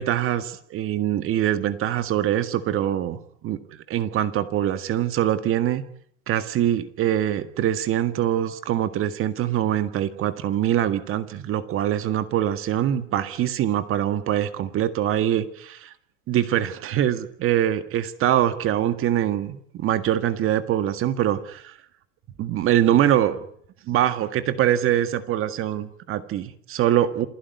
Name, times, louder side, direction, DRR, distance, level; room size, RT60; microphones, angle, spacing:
voice 1, 0.0-5.8 6.3-15.9 16.3-21.8 22.4-23.4 23.9-27.3, right 11 dB, 35° right, 11 dB, 1.8 m, -23 dB
27.5 x 16.5 x 9.5 m, 0.66 s
supercardioid pair, 145°, 39 cm